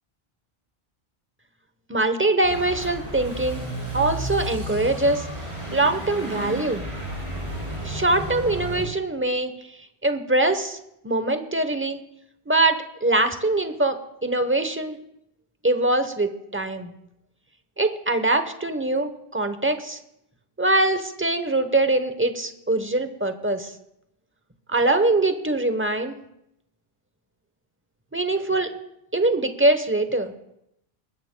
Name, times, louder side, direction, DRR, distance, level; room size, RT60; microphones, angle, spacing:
voice 1, 1.9-3.6 3.9-5.3 5.7-6.8 7.8-10.8 11.0-12.0 12.5-15.0 15.6-16.9 17.8-20.0 20.6-23.7 24.7-26.2 28.1-28.7 29.1-30.3, right 2 dB, 15° right, 8 dB, 0.8 m, -23 dB
sound 1, 2.4-8.8, right 1 dB, 35° right, 5.2 m, -32 dB
20.0 x 14.5 x 2.2 m, 0.79 s
omnidirectional pair, 1.1 m